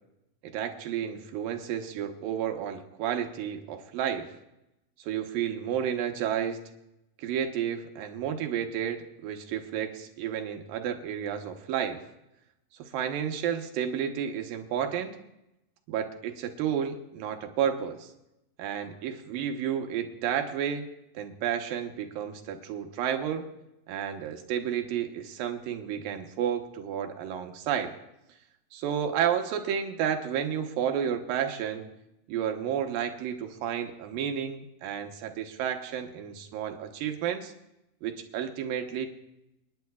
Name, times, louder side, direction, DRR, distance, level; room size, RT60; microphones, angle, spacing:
voice 1, 0.4-4.3 5.0-6.6 7.2-12.0 12.8-15.2 15.9-18.1 18.6-20.9 21.1-23.5 23.9-27.9 28.7-31.9 32.3-37.5 38.0-39.1, right 9 dB, 70° right, 5 dB, 2.5 m, -31 dB
28.5 x 10.5 x 2.4 m, 0.88 s
omnidirectional pair, 4.6 m